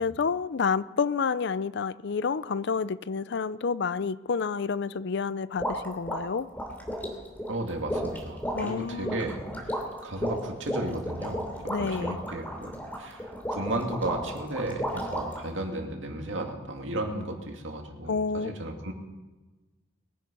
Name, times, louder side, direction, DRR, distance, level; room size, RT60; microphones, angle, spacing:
voice 1, 0.0-6.5 8.5-9.2 11.7-12.2 18.1-18.6, left 5 dB, 60° left, 0.5 m, -29 dB
sound 1, 5.6-15.5, equal, 10° left, 2.9 m, -34 dB
voice 2, 7.5-9.8 10.0-18.9, right 1 dB, 70° right, 2.3 m, -34 dB
22.0 x 10.0 x 5.3 m
head